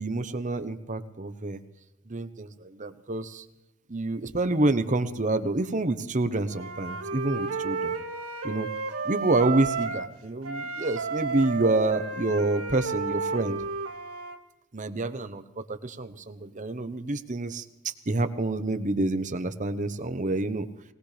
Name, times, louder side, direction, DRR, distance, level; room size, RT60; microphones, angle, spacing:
voice 1, 0.0-1.6 2.1-3.4 3.9-7.9 8.4-8.7 9.0-13.6 14.7-20.7, right 2 dB, 35° right, 10 dB, 0.9 m, -28 dB
Wind instrument woodwind instrument, 6.5-10.1 10.4-14.4, right 4 dB, 75° right, 1.5 m, -32 dB
20.5 x 19.5 x 3.3 m, 0.98 s
head